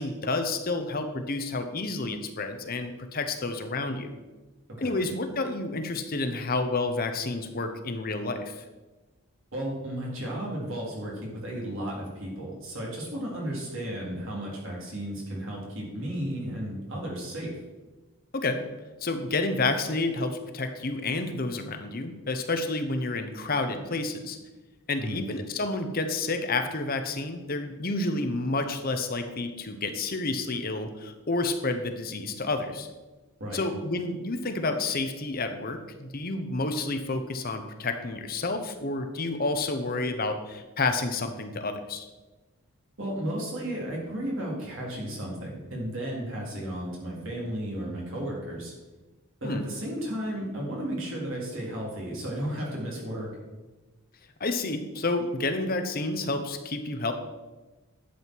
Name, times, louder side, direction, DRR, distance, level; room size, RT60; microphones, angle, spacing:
voice 1, 0.0-4.2 4.8-8.6 18.3-18.6 19.0-24.4 24.9-32.9 33.5-42.0 49.4-49.7 54.4-57.1, left 3 dB, 40° left, 7 dB, 0.9 m, -30 dB
voice 2, 9.5-17.6 25.0-25.2 33.4-33.6 43.0-48.7 49.4-53.3, right 1 dB, 60° right, -3 dB, 3.7 m, -34 dB
11.5 x 7.8 x 4.6 m, 1.2 s
head